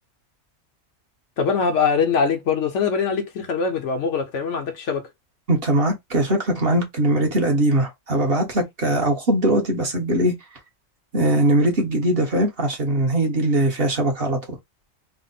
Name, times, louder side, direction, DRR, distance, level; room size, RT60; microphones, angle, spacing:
voice 1, 1.4-5.1, left 5 dB, 70° left, 1.1 m, -22 dB
voice 2, 5.5-10.3 11.1-14.4, right 1 dB, 50° right, 1.2 m, -21 dB
3.4 x 2.0 x 4.0 m
omnidirectional pair, 1.3 m